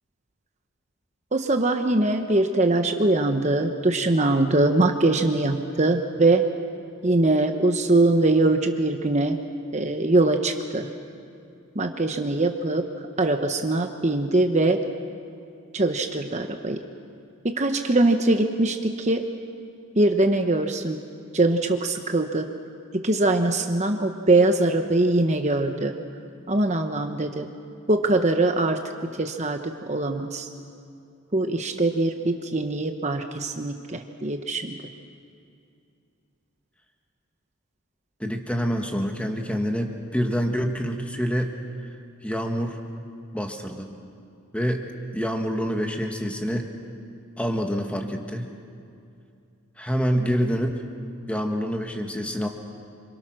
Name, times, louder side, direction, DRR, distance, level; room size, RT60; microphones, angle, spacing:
voice 1, 1.3-6.4 7.0-9.4 9.7-10.9 11.7-12.9 13.2-14.8 15.7-16.8 17.4-19.3 20.0-21.0 21.3-22.5 22.9-25.9 26.5-27.5 27.9-28.8 29.2-30.5 31.3-34.8, right 2 dB, 30° right, 5 dB, 1.1 m, -22 dB
voice 2, 38.2-41.5 42.2-42.8 43.3-44.0 44.5-44.8 45.1-46.7 47.4-48.5 49.8-50.8 51.3-52.5, equal, 5° left, 3 dB, 1.6 m, -26 dB
28.0 x 26.5 x 6.3 m, 2.5 s
head